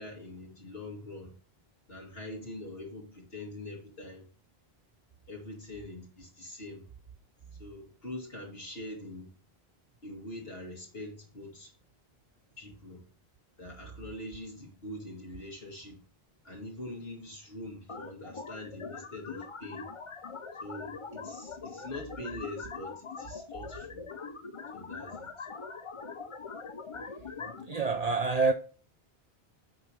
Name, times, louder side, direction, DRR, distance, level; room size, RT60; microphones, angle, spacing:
voice 1, 0.0-1.4 1.9-4.3 5.3-6.8 7.6-9.3 10.0-11.7 12.6-13.0 13.6-16.0 16.4-19.9 20.6-24.0 24.7-25.5, left 1 dB, 70° left, 2.6 m, -43 dB
sound 1, 17.9-27.9, left 5 dB, 35° left, 0.6 m, -42 dB
voice 2, 27.7-28.5, right 3 dB, 50° right, 0.5 m, -26 dB
7.9 x 5.9 x 3.3 m
omnidirectional pair, 1.1 m